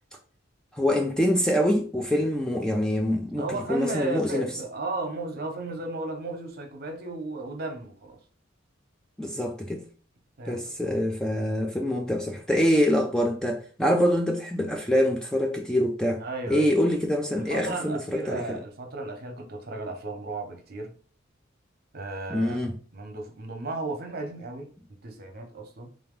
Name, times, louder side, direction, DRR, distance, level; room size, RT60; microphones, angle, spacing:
voice 1, 0.7-4.5 9.2-9.8 10.5-18.6 22.3-22.7, equal, 5° left, 0.4 m, -25 dB
voice 2, 3.4-8.2 10.4-10.9 16.2-16.7 17.3-20.9 21.9-24.7 25.0-25.9, right 2 dB, 50° right, 0.9 m, -34 dB
3.8 x 2.9 x 3.6 m
head